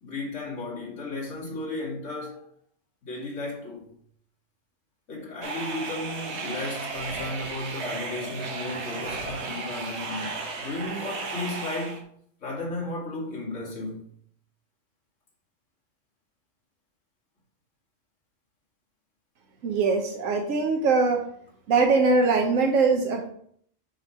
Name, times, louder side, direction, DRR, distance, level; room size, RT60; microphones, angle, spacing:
voice 1, 0.0-2.5 3.0-3.9 5.1-12.1 12.4-14.1, left 2 dB, 70° left, 2.1 m, -34 dB
sound 1, 5.4-12.0, right 3 dB, 60° right, 1.2 m, -34 dB
voice 2, 19.6-21.2 21.7-23.3, right 4 dB, 80° right, 1.2 m, -22 dB
6.2 x 3.1 x 5.5 m
omnidirectional pair, 1.3 m